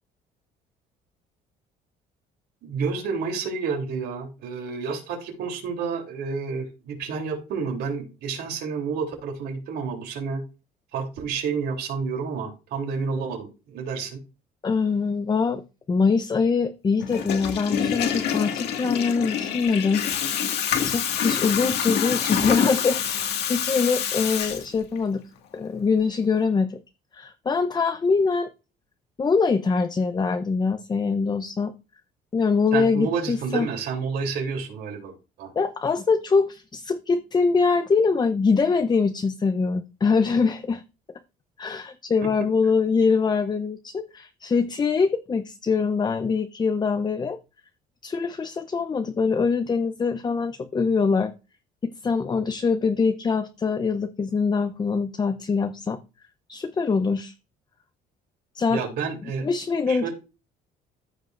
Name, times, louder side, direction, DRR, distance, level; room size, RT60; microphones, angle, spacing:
voice 1, 2.6-10.4 10.9-14.2 32.7-35.5 58.7-59.5 59.9-60.1, right 5 dB, 70° right, 3.3 m, -30 dB
voice 2, 14.6-15.6 15.9-20.0 20.8-25.2 25.5-26.8 27.1-28.5 29.2-31.7 32.3-33.7 35.5-40.8 41.6-47.4 48.0-51.3 51.8-56.0 56.5-57.3 58.5-58.8 59.4-60.1, left 5 dB, 25° left, 0.7 m, -23 dB
Water tap faucet / Toilet flush, 17.0-25.0, left 8 dB, 75° left, 2.0 m, -26 dB
14.5 x 5.3 x 2.5 m
cardioid pair, 110°, 17 cm